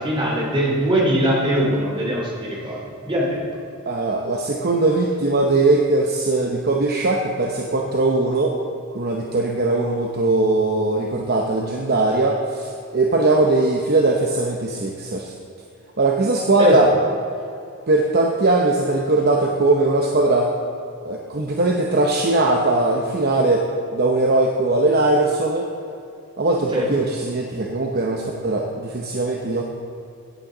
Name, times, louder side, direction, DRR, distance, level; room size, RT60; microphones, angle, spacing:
voice 1, 0.0-2.8 3.0-3.4 16.6-16.9 26.7-26.9, equal, 20° right, -3 dB, 2.7 m, -21 dB
voice 2, 3.9-8.5 8.9-15.3 16.0-16.9 17.9-20.5 21.0-23.6 23.9-25.7 26.4-29.6, right 2 dB, 45° right, 1 dB, 0.8 m, -20 dB
15.5 x 8.9 x 3.9 m, 2.6 s
head